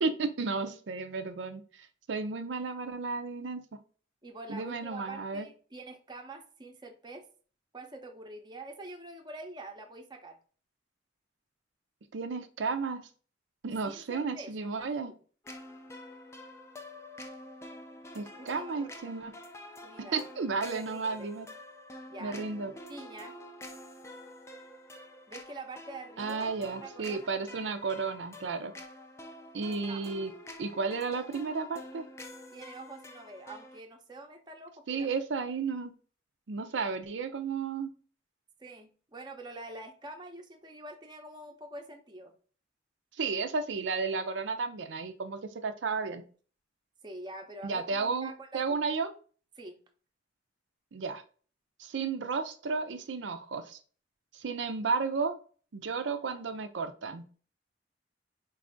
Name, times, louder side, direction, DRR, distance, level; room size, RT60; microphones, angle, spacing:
voice 1, 0.0-3.6 4.5-5.5 12.1-13.0 13.6-15.1 18.1-19.3 20.1-21.5 22.2-22.7 26.2-28.7 29.5-30.3 30.6-32.0 34.9-35.9 36.5-37.9 43.1-46.2 47.6-49.1 50.9-51.2 51.8-53.8 54.3-55.4 55.7-57.2, right 4 dB, 80° right, 7 dB, 0.5 m, -33 dB
voice 2, 4.2-7.2 7.7-10.4 13.8-15.2 18.4-18.9 19.8-20.2 20.6-21.3 22.1-22.4 22.9-23.3 25.3-27.3 29.6-30.0 32.5-35.1 38.6-42.3 47.0-48.8 49.6-49.8, right 2 dB, 25° right, 3 dB, 0.7 m, -46 dB
sound 1, 15.4-33.8, left 1 dB, 15° left, 0.4 m, -48 dB
4.7 x 2.5 x 3.4 m, 0.41 s
head